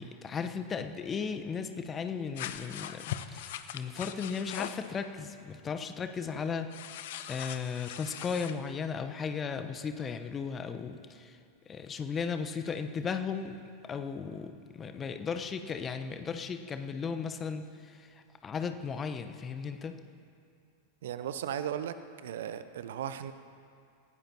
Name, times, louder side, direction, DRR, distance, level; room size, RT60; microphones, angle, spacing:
voice 1, 0.0-6.9 7.3-11.4 11.7-13.6 13.9-19.9, left 6 dB, 20° left, 8 dB, 0.9 m, -36 dB
sound 1, 2.3-4.9 6.7-8.5, left 11 dB, 55° left, 0.8 m, -40 dB
voice 2, 21.0-22.0 22.2-23.3, right 10 dB, 60° right, 12 dB, 0.7 m, -36 dB
29.0 x 16.5 x 2.9 m, 2.4 s
figure-of-eight pair, 90°, 0 cm